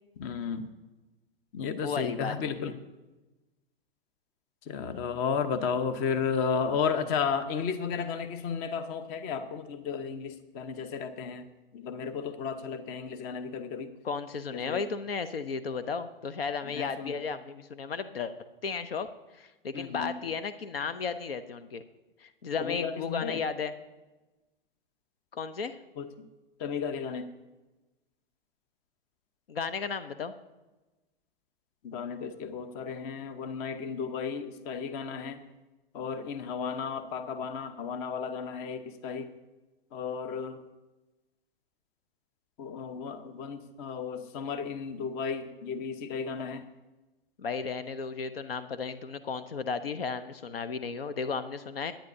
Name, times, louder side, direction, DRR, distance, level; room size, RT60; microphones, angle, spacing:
voice 1, 0.2-0.7 1.5-2.7 4.7-11.4 11.7-13.9 14.5-14.8 16.7-17.2 19.7-20.1 22.6-23.4 26.0-26.1 26.6-27.3 31.8-35.4 35.9-39.3 39.9-40.6 42.6-46.6, left 6 dB, 35° left, 11 dB, 0.9 m, -33 dB
voice 2, 1.8-2.7 14.0-18.3 18.6-19.1 19.3-21.8 22.2-23.7 25.3-25.8 29.5-30.3 47.4-51.9, left 5 dB, 75° left, 14 dB, 0.7 m, -34 dB
17.0 x 10.0 x 2.7 m, 1.1 s
hypercardioid pair, 110°, 29 cm